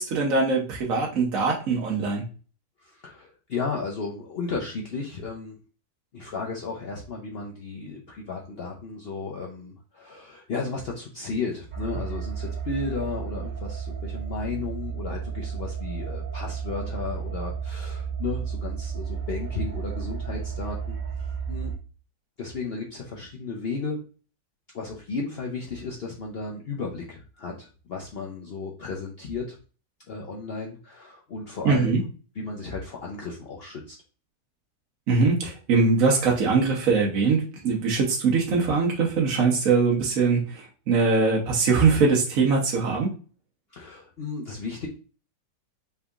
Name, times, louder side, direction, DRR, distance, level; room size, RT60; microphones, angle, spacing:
voice 1, 0.0-2.2 31.6-32.0 35.1-43.1, right 4 dB, 55° right, -1 dB, 1.1 m, -22 dB
voice 2, 2.8-5.6 6.1-21.0 21.5-21.7 22.4-24.0 24.7-29.6 30.1-32.0 32.3-34.0 43.7-44.9, left 4 dB, 80° left, -1 dB, 0.5 m, -34 dB
sound 1, 11.7-21.8, right 6 dB, 85° right, 0.4 m, -33 dB
5.4 x 3.5 x 2.4 m, 0.37 s
omnidirectional pair, 1.9 m